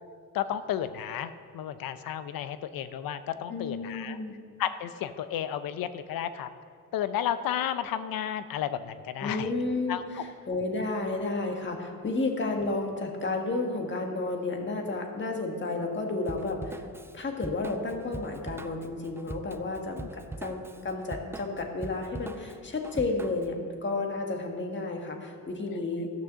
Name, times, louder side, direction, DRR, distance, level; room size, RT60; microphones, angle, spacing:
voice 1, 0.3-4.2 4.6-6.5 6.9-9.5 9.9-10.0 20.0-20.1, left 10 dB, 90° left, 12 dB, 0.6 m, -32 dB
voice 2, 3.5-4.3 9.2-16.8 17.1-26.1, left 3 dB, 35° left, 2 dB, 1.5 m, -32 dB
Drum kit / Drum, 16.2-23.6, right 2 dB, 10° right, 0.3 m, -42 dB
13.0 x 6.2 x 6.8 m, 2.2 s
cardioid pair, 125°, 34 cm